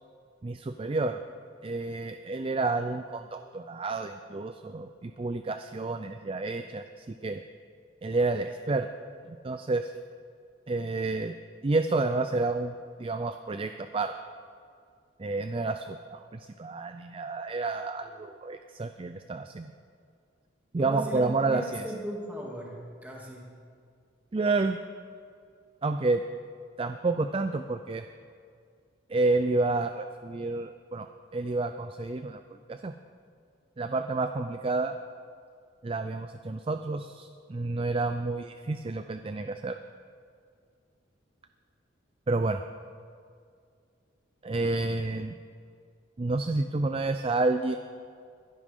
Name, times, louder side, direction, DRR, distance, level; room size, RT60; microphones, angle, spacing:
voice 1, 0.4-1.2 1.6-7.4 8.0-8.9 9.3-9.9 10.7-11.3 11.6-14.1 15.2-19.7 20.7-21.8 24.3-24.8 25.8-26.2 26.8-28.0 29.1-32.4 32.7-32.9 33.8-35.0 35.8-39.8 42.3-42.6 44.4-45.4 46.2-47.8, right 3 dB, 30° right, 8 dB, 0.4 m, -30 dB
voice 2, 20.8-23.4, right 1 dB, 10° right, -3 dB, 2.5 m, -38 dB
22.5 x 11.0 x 3.7 m, 2.2 s
head